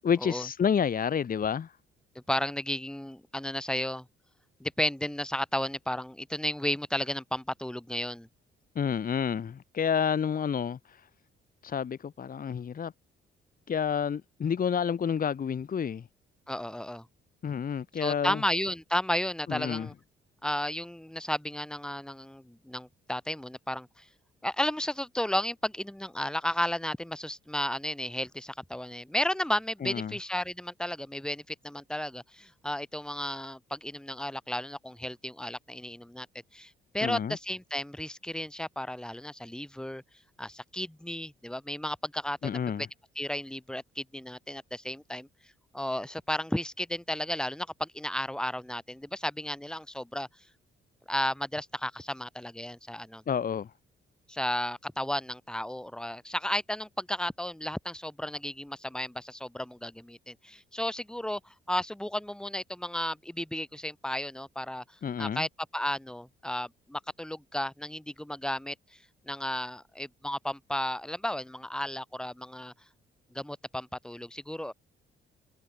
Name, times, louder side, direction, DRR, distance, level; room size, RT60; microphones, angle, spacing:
voice 1, 0.0-1.7 8.7-11.0 11.6-12.9 13.7-16.1 17.4-18.4 19.5-19.9 29.8-30.2 37.0-37.4 42.4-42.9 53.3-53.7 65.0-65.5, left 7 dB, 40° left, 1.1 m, -29 dB
voice 2, 2.3-4.1 4.6-8.3 16.5-17.1 18.0-19.9 20.4-24.0 24.4-36.3 36.5-40.0 40.4-42.6 43.1-45.3 45.7-50.3 51.1-53.2 54.3-64.8 65.2-65.5 65.7-68.7 69.3-72.7 73.3-74.7, left 1 dB, 5° left, 1.8 m, -33 dB
cardioid pair, 80°, 21 cm